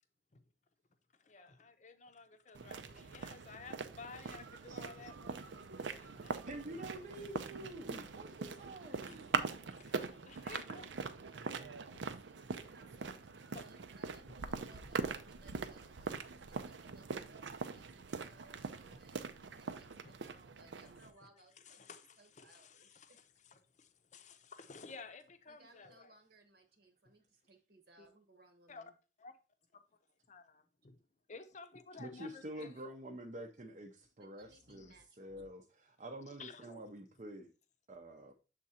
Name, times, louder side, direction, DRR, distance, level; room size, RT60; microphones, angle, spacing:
voice 1, 1.1-6.4 8.4-8.6 9.0-9.2 9.7-10.8 11.9-12.0 12.5-12.6 13.5-13.6 18.9-19.1 20.0-20.2 20.8-20.9 21.2-21.3 21.6-23.2 24.1-26.2 27.0-27.1 28.0-28.1 28.7-28.9 29.2-29.3 29.7-29.8 30.3-31.0 31.3-32.9 34.7-35.0 35.3-35.5 36.3-36.9, left 4 dB, 40° left, 0.6 m, -54 dB
sound 1, 2.5-21.1, right 4 dB, 75° right, 0.6 m, -42 dB
voice 2, 6.5-9.3 32.0-37.5 37.9-38.3, right 1 dB, 40° right, 0.6 m, -48 dB
voice 3, 8.8-9.8 10.4-21.8 22.2-23.2 25.5-28.9 32.5-32.7 34.2-35.4, right 2 dB, 60° right, 1.0 m, -64 dB
7.3 x 3.7 x 4.2 m
head